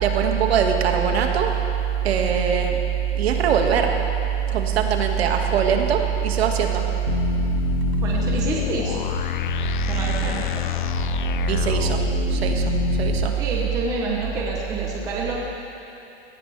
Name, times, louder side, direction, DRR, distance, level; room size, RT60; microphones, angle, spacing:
voice 1, 0.0-1.5 2.0-2.8 3.2-3.9 4.5-6.8 11.5-12.0 12.3-13.3, right 7 dB, 60° right, 3 dB, 2.0 m, -21 dB
sound 1, 7.1-13.3, left 12 dB, 45° left, 0.4 m, -26 dB
voice 2, 8.0-9.1 9.9-10.7 13.4-15.4, right 3 dB, 10° right, -3 dB, 0.8 m, -28 dB
22.0 x 18.0 x 3.4 m, 2.9 s
supercardioid pair, 175°, 35 cm